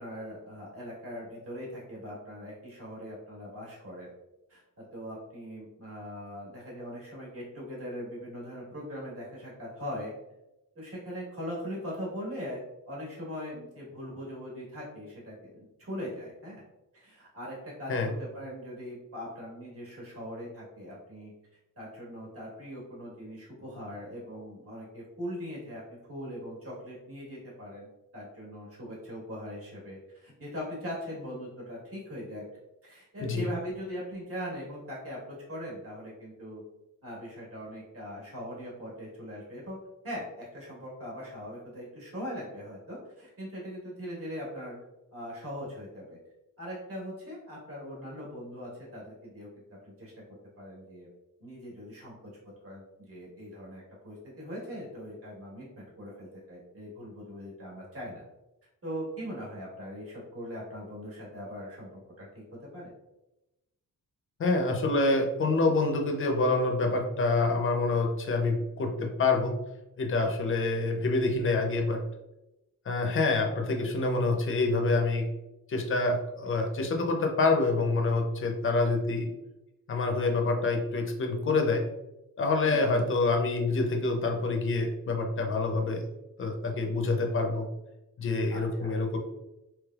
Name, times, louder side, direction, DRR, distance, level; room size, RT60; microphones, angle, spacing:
voice 1, 0.0-4.1 4.5-4.6 4.9-10.1 10.7-16.6 16.9-17.9 18.2-21.3 21.8-25.8 26.1-27.9 28.1-32.4 32.8-36.6 37.0-39.8 40.0-44.8 45.1-46.2 46.6-49.5 49.8-50.1 50.6-51.1 51.4-52.1 52.6-58.2 58.8-62.3 62.7-62.9 82.6-83.0 88.5-89.0, equal, 45° right, -4 dB, 1.4 m, -40 dB
voice 2, 64.4-69.6 70.0-72.0 72.9-75.3 75.7-79.3 79.9-81.9 82.4-86.0 86.4-87.7 88.2-89.2, left 3 dB, 40° left, 3 dB, 0.5 m, -27 dB
3.3 x 3.0 x 2.3 m, 0.95 s
wide cardioid pair, 155°, 32 cm